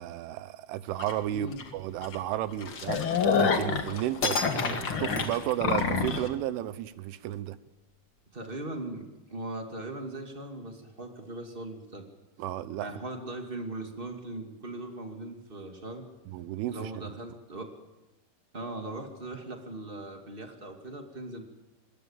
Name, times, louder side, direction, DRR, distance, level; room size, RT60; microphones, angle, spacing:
voice 1, 0.0-3.0 3.3-7.6 12.4-12.9 16.3-17.1, right 13 dB, 80° right, 14 dB, 3.4 m, -33 dB
sound 1, 1.0-1.1 1.6-1.7 2.0-2.2 2.5-6.3, left 5 dB, 90° left, 1.1 m, -28 dB
voice 2, 1.3-1.6 8.3-12.1 12.8-16.1 16.7-17.7 18.5-21.4, right 2 dB, 35° right, 4 dB, 0.8 m, -39 dB
sound 2, 2.6-3.8 4.2-6.1, left 4 dB, 55° left, 1.2 m, -32 dB
26.5 x 21.0 x 7.4 m, 1.1 s
omnidirectional pair, 5.6 m